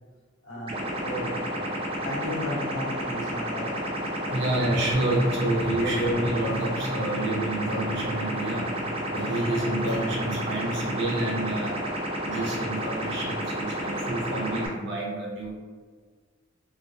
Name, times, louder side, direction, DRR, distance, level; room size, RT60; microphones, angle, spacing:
voice 1, 0.4-3.7 4.2-4.4 5.4-5.5 5.8-6.1, left 1 dB, 70° left, -4 dB, 0.8 m, -35 dB
sound 1, 0.7-14.7, right 1 dB, 25° right, 0.4 m, -31 dB
voice 2, 4.0-11.8 12.2-15.5, right 1 dB, 60° right, -2 dB, 0.7 m, -28 dB
3.4 x 2.0 x 2.7 m, 1.5 s
head